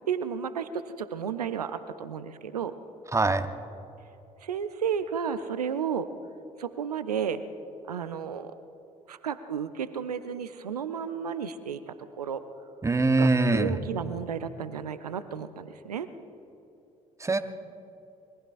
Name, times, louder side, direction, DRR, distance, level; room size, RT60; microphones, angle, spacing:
voice 1, 0.1-2.7 4.4-6.1 6.6-7.4 7.9-8.5 9.1-12.4 13.2-16.1, right 7 dB, 85° right, 13 dB, 0.5 m, -32 dB
voice 2, 3.1-3.5 12.8-13.7 17.2-17.4, right 3 dB, 15° right, 9 dB, 0.9 m, -23 dB
26.5 x 21.5 x 2.5 m, 2.9 s
figure-of-eight pair, 50°, 19 cm